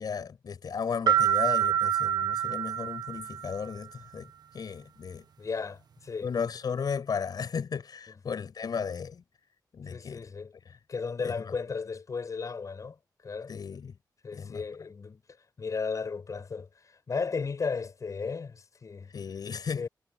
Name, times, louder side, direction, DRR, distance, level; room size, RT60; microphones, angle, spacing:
voice 1, 0.0-5.2 6.2-9.2 9.7-10.3 11.2-11.3 13.5-13.9 14.3-14.6 19.1-19.8, left 6 dB, 65° left, 6.5 m, -35 dB
sound 1, 1.1-3.7, right 9 dB, 70° right, 1.3 m, -27 dB
voice 2, 5.4-6.3 8.3-8.4 9.9-10.5 10.9-13.0 13.2-13.5 14.2-15.2 15.6-19.1 19.7-19.9, left 5 dB, 50° left, 5.4 m, -35 dB
wide cardioid pair, 120°, 7 cm